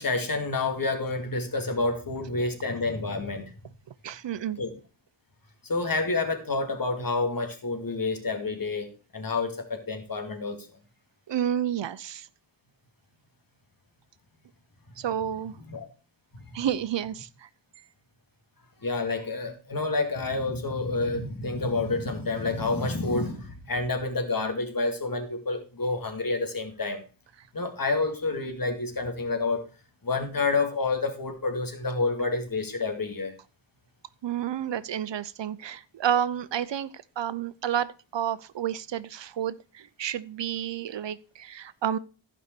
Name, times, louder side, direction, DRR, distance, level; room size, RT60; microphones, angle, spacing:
voice 1, 0.0-3.7 4.6-4.7 5.6-10.6 15.7-15.9 16.3-16.6 18.8-27.0 27.5-29.7 30.0-33.3, left 3 dB, 45° left, 2.5 m, -29 dB
voice 2, 4.0-4.6 11.3-12.3 15.0-15.5 16.5-17.5 34.2-36.9 37.2-42.0, right 10 dB, 70° right, 0.8 m, -30 dB
15.0 x 5.5 x 4.5 m
wide cardioid pair, 80°, 45 cm